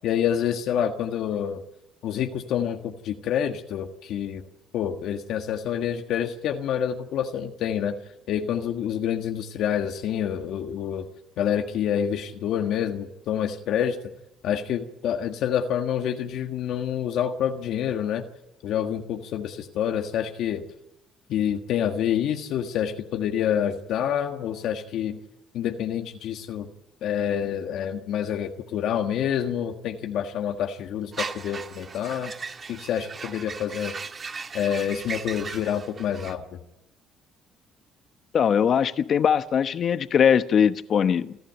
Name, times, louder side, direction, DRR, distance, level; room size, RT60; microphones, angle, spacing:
voice 1, 0.0-1.6 2.0-4.4 4.7-8.0 8.3-11.1 11.4-14.0 14.4-18.2 18.6-20.6 21.3-25.2 25.5-26.7 27.0-32.3 32.7-33.9 34.5-36.6, left 9 dB, 75° left, 1.6 m, -27 dB
sound 1, 31.1-36.3, right 5 dB, 40° right, 1.9 m, -37 dB
voice 2, 38.3-41.4, left 8 dB, 55° left, 1.1 m, -21 dB
28.5 x 11.5 x 9.2 m
supercardioid pair, 80°, 0 cm